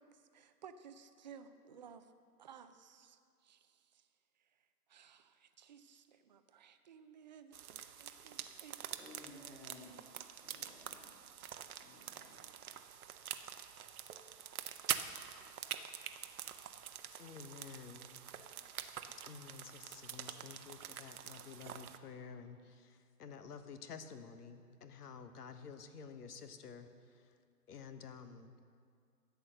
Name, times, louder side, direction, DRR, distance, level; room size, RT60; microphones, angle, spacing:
voice 1, 0.0-2.1 2.4-4.1 4.9-9.2 9.6-9.7, right 7 dB, 30° right, 9 dB, 0.5 m, -57 dB
sound 1, 7.5-22.0, right 9 dB, 60° right, 0.8 m, -46 dB
voice 2, 9.0-10.0 10.4-11.1 11.7-12.5, left 1 dB, 5° left, -3 dB, 1.8 m, -57 dB
voice 3, 17.2-18.1 19.2-26.9 27.7-28.5, left 6 dB, 70° left, 9 dB, 1.1 m, -51 dB
13.0 x 8.1 x 6.4 m, 2.2 s
hypercardioid pair, 135°, 48 cm